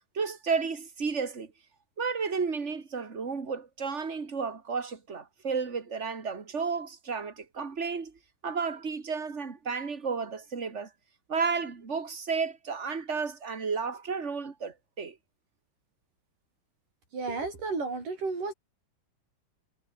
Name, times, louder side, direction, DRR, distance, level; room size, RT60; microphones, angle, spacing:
voice 1, 0.1-1.5 2.0-8.1 8.4-10.9 11.3-15.2, right 5 dB, 25° right, 1.9 m, -32 dB
voice 2, 17.1-18.5, right 3 dB, 65° right, 9.7 m, -32 dB
omnidirectional pair, 4.0 m